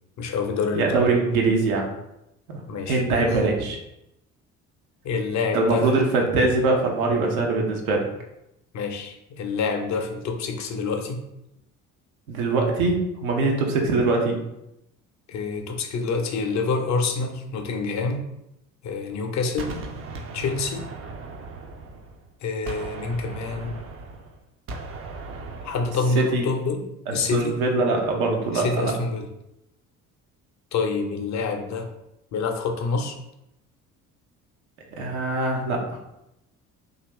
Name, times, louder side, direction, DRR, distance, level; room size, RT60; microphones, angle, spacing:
voice 1, 0.2-1.0 2.7-3.5 5.0-6.2 8.7-11.2 15.3-18.2 18.8-19.8 20.3-20.9 22.4-23.8 25.6-27.6 28.5-29.3 30.7-31.9 32.3-33.2, left 4 dB, 40° left, 4 dB, 0.6 m, -27 dB
voice 2, 0.7-1.9 2.5-2.6 2.9-3.8 5.5-8.1 12.3-14.4 26.1-26.4 27.1-28.9 35.0-35.8, right 3 dB, 75° right, 1 dB, 0.7 m, -22 dB
Gunshot gunfire, 19.6-22.3 22.7-26.2, right 3 dB, 35° right, 0.5 m, -37 dB
2.8 x 2.4 x 3.2 m, 0.85 s
figure-of-eight pair, 50°, 43 cm